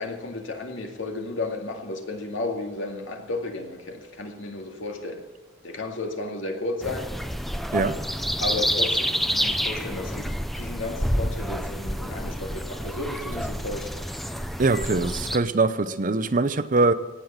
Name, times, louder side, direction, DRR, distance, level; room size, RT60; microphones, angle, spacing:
voice 1, 0.0-5.2 5.6-7.1 7.7-8.0 8.4-14.2, left 2 dB, 75° left, 2.2 m, -33 dB
sound 1, 6.8-15.4, equal, ahead, 0.6 m, -28 dB
voice 2, 14.6-16.9, right 3 dB, 45° right, 0.7 m, -22 dB
17.0 x 8.5 x 7.3 m
head